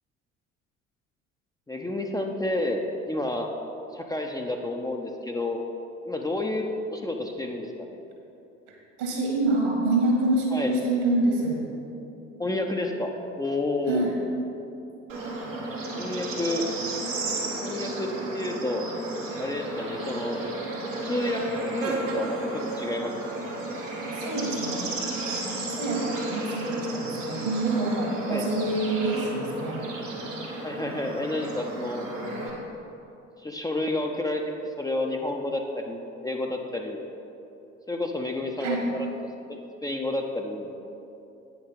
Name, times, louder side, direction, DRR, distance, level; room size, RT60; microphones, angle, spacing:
voice 1, 1.7-3.5 3.9-5.6 6.1-8.0 10.5-10.7 12.4-13.1 13.4-14.1 15.9-16.6 17.6-18.9 19.4-20.4 21.0-21.4 21.7-23.1 28.3-28.5 30.6-32.0 33.4-34.4 34.8-37.0 37.9-38.8 39.5-40.7, left 2 dB, 10° left, 1 dB, 0.6 m, -30 dB
voice 2, 8.7-11.6 13.9-14.2 24.1-24.9 25.2-29.8 38.6-38.8, right 2 dB, 65° right, 0 dB, 2.0 m, -27 dB
Bird / Insect, 15.1-32.5, right 2 dB, 80° right, 1.4 m, -32 dB
8.8 x 5.9 x 5.3 m, 2.9 s
figure-of-eight pair, 55°, 38 cm